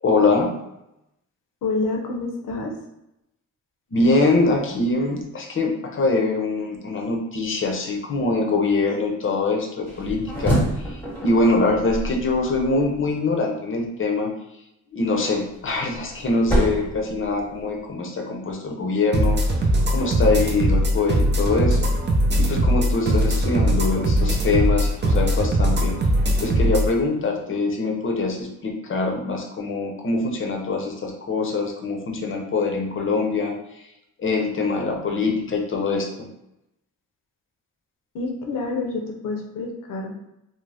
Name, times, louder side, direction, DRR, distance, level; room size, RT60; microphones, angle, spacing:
voice 1, 0.0-0.6 3.9-14.3 14.9-19.4 19.9-21.9 22.4-26.1 26.4-33.8 34.2-36.3, left 3 dB, 40° left, 1 dB, 0.6 m, -23 dB
voice 2, 1.6-2.7 38.1-40.1, left 3 dB, 80° left, 2 dB, 0.6 m, -28 dB
sound 1, 9.9-13.0 15.2-17.8, right 1 dB, 5° left, 0.9 m, -27 dB
sound 2, 19.1-26.9, right 1 dB, 35° right, 0.5 m, -20 dB
2.6 x 2.0 x 3.3 m, 0.85 s
cardioid pair, 90°, 32 cm